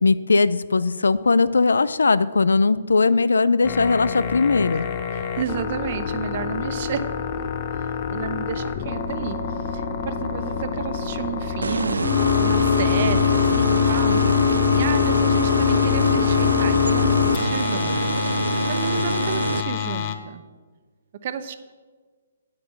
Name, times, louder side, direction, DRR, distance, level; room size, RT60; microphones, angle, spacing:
voice 1, 0.0-4.9, left 4 dB, 80° left, 17 dB, 0.4 m, -19 dB
sound 1, 3.6-20.1, left 8 dB, 40° left, 0.9 m, -24 dB
voice 2, 4.7-7.1 7.7-12.1 12.4-14.4 14.7-20.4 21.2-21.6, right 7 dB, 50° right, 10 dB, 0.9 m, -32 dB
sound 2, 11.6-19.6, right 4 dB, 85° right, 0.3 m, -26 dB
9.6 x 8.5 x 5.9 m, 1.5 s
hypercardioid pair, 135°, 0 cm